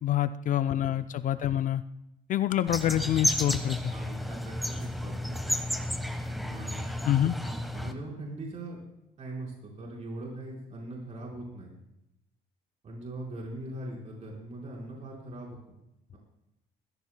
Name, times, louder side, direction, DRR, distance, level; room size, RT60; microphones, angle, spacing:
voice 1, 0.0-1.8 2.3-3.9 7.1-7.4, left 12 dB, 50° left, 12 dB, 0.5 m, -26 dB
voice 2, 0.7-1.5 3.9-5.6 6.4-7.0 7.4-8.8 9.2-11.7 12.8-15.7 16.1-16.2, right 1 dB, 40° right, -2 dB, 4.4 m, -41 dB
sound 1, 2.7-7.9, left 1 dB, ahead, 1.2 m, -32 dB
21.0 x 15.5 x 2.2 m, 0.86 s
cardioid pair, 110°, 17 cm